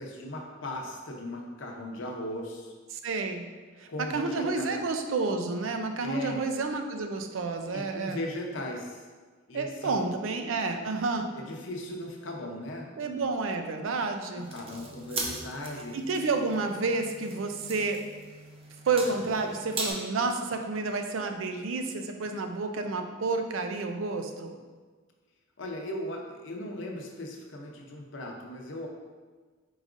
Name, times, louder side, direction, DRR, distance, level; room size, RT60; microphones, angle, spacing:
voice 1, 0.0-2.7 3.9-4.7 6.0-6.4 7.7-9.0 9.5-10.1 11.3-13.2 14.3-16.0 19.0-19.5 25.6-28.9, left 1 dB, 70° left, 1 dB, 0.7 m, -38 dB
voice 2, 2.9-3.5 3.8-8.2 9.5-11.3 13.0-14.5 15.9-18.0 18.9-24.6, right 3 dB, 90° right, 6 dB, 0.4 m, -30 dB
sound 1, 14.4-19.9, right 3 dB, 30° right, 0.5 m, -39 dB
4.7 x 3.9 x 2.5 m, 1.4 s
head